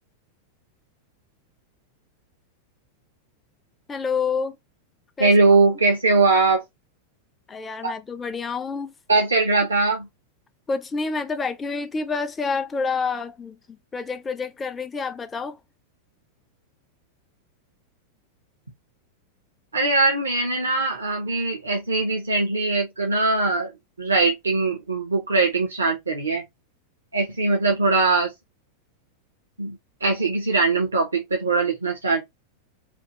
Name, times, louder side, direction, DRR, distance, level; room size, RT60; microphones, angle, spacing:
voice 1, 3.9-4.6 5.2-5.3 7.5-8.9 10.7-15.6, left 4 dB, 15° left, 0.5 m, -28 dB
voice 2, 5.2-6.6 7.8-7.9 9.1-10.1 19.7-23.7 24.0-26.4 27.1-28.3 29.6-32.2, right 3 dB, 75° right, 0.7 m, -21 dB
3.4 x 2.3 x 2.9 m
figure-of-eight pair, 90°, 0 cm